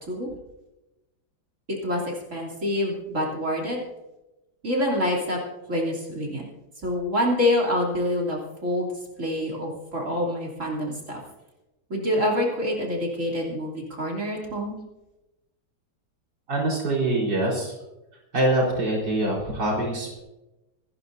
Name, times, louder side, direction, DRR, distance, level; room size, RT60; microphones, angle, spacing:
voice 1, 1.7-3.8 4.6-5.4 5.7-6.4 6.8-8.9 9.2-11.2 11.9-14.8, left 1 dB, 45° right, -2 dB, 3.4 m, -26 dB
voice 2, 16.5-17.7 18.3-20.2, right 1 dB, 80° right, -3 dB, 5.0 m, -24 dB
27.5 x 11.0 x 2.7 m, 0.99 s
omnidirectional pair, 1.9 m